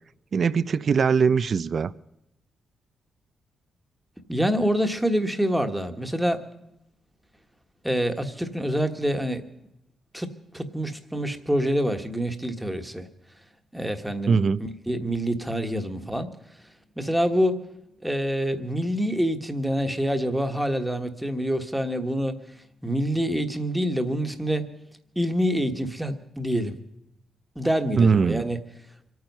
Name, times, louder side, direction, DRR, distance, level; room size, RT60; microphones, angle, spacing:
voice 1, 0.3-1.9 14.3-14.7 28.0-28.5, right 5 dB, 45° right, 0.5 m, -21 dB
voice 2, 4.3-6.4 7.8-9.4 10.1-13.1 13.7-14.4 14.9-16.3 17.0-17.6 18.0-22.4 22.8-24.6 25.1-26.8 27.5-28.6, equal, 5° right, 1.4 m, -26 dB
25.5 x 9.4 x 5.4 m
cardioid pair, 120°, 0 cm